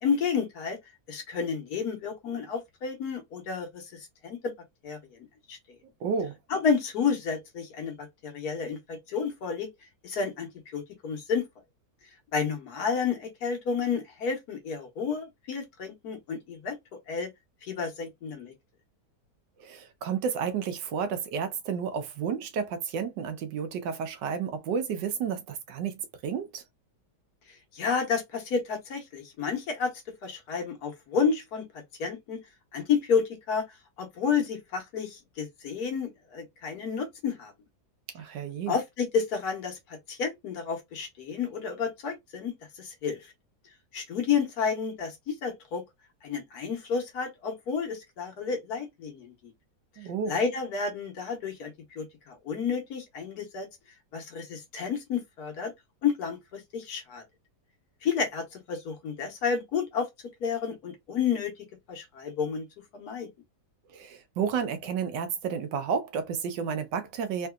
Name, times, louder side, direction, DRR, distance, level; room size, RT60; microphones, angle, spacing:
voice 1, 0.0-0.8 1.1-4.5 4.8-5.2 5.5-5.6 6.5-9.7 10.0-11.5 12.3-16.8 17.1-17.3 17.6-18.5 27.5-29.9 30.2-32.4 32.7-33.6 34.0-37.5 38.7-43.3 43.9-45.8 46.2-49.5 50.2-53.7 54.1-55.7 56.0-57.2 58.0-60.1 60.4-61.5 61.9-62.6 62.9-63.3, left 6 dB, 65° left, 1.4 m, -31 dB
voice 2, 6.0-6.4 19.6-26.6 38.1-38.8 50.0-50.3 63.9-67.5, right 6 dB, 90° right, 1.4 m, -31 dB
3.8 x 2.6 x 2.3 m
omnidirectional pair, 1.8 m